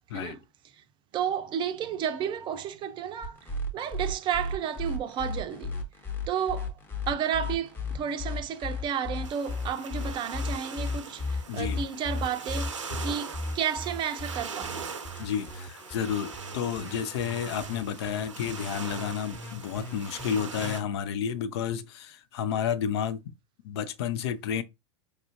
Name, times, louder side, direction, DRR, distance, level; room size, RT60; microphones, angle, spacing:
voice 1, 1.1-5.8 6.3-6.7 7.1-14.8, right 8 dB, 30° right, 0.5 m, -32 dB
sound 1, 3.2-20.7, left 2 dB, 15° left, 0.9 m, -35 dB
sound 2, 9.2-20.8, right 5 dB, 80° right, 0.6 m, -41 dB
voice 2, 11.5-11.8 15.2-23.2 23.6-24.6, left 8 dB, 55° left, 0.5 m, -31 dB
4.5 x 2.4 x 2.8 m
figure-of-eight pair, 90°, 16 cm